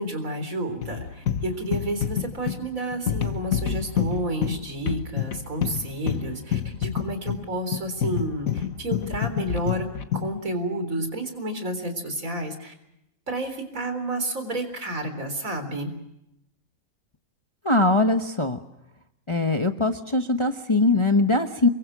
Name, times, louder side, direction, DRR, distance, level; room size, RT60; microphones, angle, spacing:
voice 1, 0.0-12.7 13.3-15.9, right 1 dB, 65° right, 8 dB, 4.3 m, -30 dB
sound 1, 0.8-10.4, left 9 dB, 65° left, 1.6 m, -28 dB
voice 2, 17.6-18.6 19.3-21.7, left 2 dB, 20° left, 6 dB, 1.1 m, -21 dB
29.0 x 23.0 x 6.2 m, 0.84 s
omnidirectional pair, 1.6 m